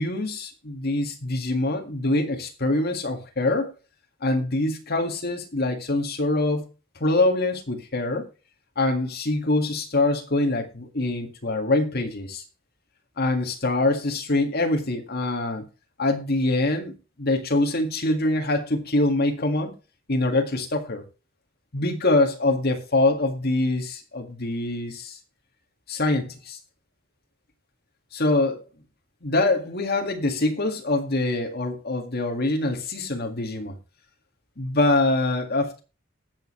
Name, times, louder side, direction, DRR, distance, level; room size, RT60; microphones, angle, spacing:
voice 1, 0.0-3.7 4.2-6.7 7.0-8.3 8.8-12.4 13.2-15.7 16.0-19.7 20.1-21.0 21.7-25.2 25.9-26.6 28.1-28.6 29.2-33.8 34.6-35.8, left 2 dB, 50° left, 1.9 m, -24 dB
18.5 x 6.6 x 3.1 m
head